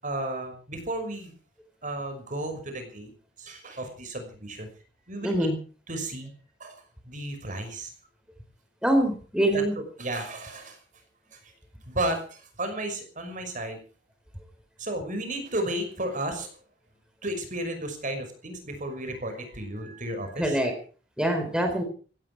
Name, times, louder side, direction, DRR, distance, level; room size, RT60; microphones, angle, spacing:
voice 1, 0.0-1.3 1.8-3.1 3.4-4.7 5.1-5.5 5.9-6.3 6.6-7.9 9.5-9.6 10.0-10.8 11.3-11.5 11.9-13.8 14.8-16.6 17.2-20.6, right 1 dB, 45° right, 7 dB, 5.9 m, -33 dB
voice 2, 5.2-5.6 8.8-9.7 20.4-20.7 21.2-21.8, right 1 dB, 5° right, 4 dB, 4.1 m, -24 dB
18.0 x 17.0 x 4.8 m, 0.40 s
head